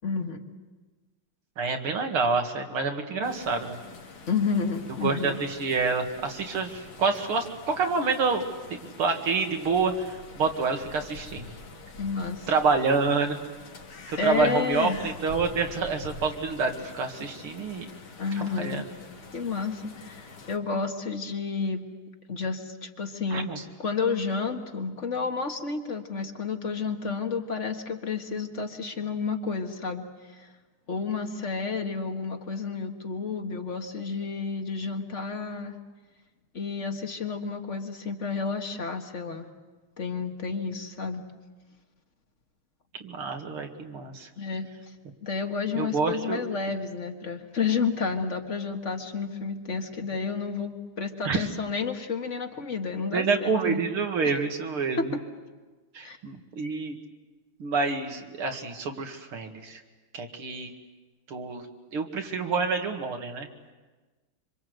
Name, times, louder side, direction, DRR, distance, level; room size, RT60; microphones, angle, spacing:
voice 1, 0.0-0.4 4.3-5.4 12.0-12.5 14.2-15.0 18.2-18.9 19.3-21.8 22.3-23.5 23.8-30.0 30.3-30.5 30.9-35.8 36.5-39.5 40.0-41.2 44.4-44.7 45.2-53.8 55.0-55.2 56.0-56.2, left 5 dB, 35° left, 5 dB, 1.8 m, -30 dB
voice 2, 1.6-3.8 5.0-8.4 9.0-11.5 12.5-13.4 14.1-17.9 18.4-18.8 23.3-23.6 43.0-44.3 45.7-46.4 51.2-51.5 53.1-55.1 55.9-57.0 57.6-59.8 60.1-60.7 61.3-61.7 61.9-63.5, right 4 dB, 75° right, 4 dB, 3.0 m, -27 dB
sound 1, 3.2-20.6, left 4 dB, 85° left, 3.2 m, -46 dB
26.0 x 26.0 x 8.0 m, 1.3 s
omnidirectional pair, 2.4 m